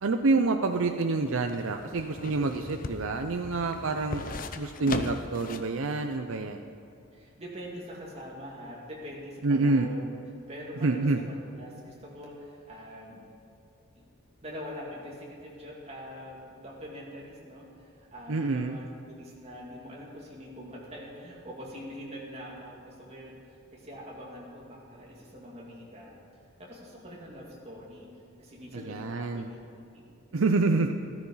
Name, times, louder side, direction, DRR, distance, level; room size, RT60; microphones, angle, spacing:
voice 1, 0.0-4.2 4.6-6.6 9.4-9.9 10.8-11.2 18.3-18.8 28.7-29.5 30.3-30.9, right 3 dB, 70° right, 5 dB, 0.6 m, -27 dB
sound 1, 0.7-5.8 6.1-6.2, left 3 dB, 40° left, 0.6 m, -38 dB
voice 2, 7.1-10.1 10.5-13.2 14.4-26.1 26.6-28.1 28.4-30.4, equal, 30° right, -4 dB, 2.8 m, -44 dB
14.0 x 13.0 x 5.6 m, 2.4 s
head